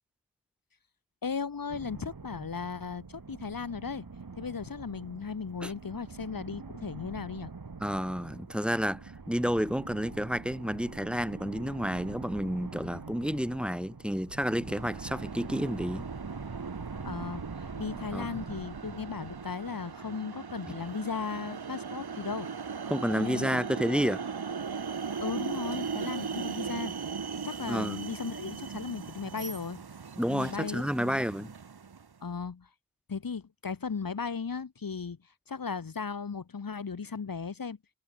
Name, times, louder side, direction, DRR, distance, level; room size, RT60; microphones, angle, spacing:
voice 1, 1.2-4.1 4.4-7.5 17.0-22.7 23.1-23.6 25.2-27.1 27.4-29.8 30.3-31.2 32.2-32.7 33.1-37.8, left 5 dB, 65° left, 2.0 m, -36 dB
sound 1, 1.7-20.1, right 4 dB, 65° right, 7.6 m, -44 dB
voice 2, 7.8-16.1 18.1-18.3 22.9-24.2 27.7-28.0 30.2-31.5, equal, 5° right, 6.0 m, -30 dB
sound 2, 14.6-32.1, right 6 dB, 85° right, 2.8 m, -39 dB
wide cardioid pair, 95°, 37 cm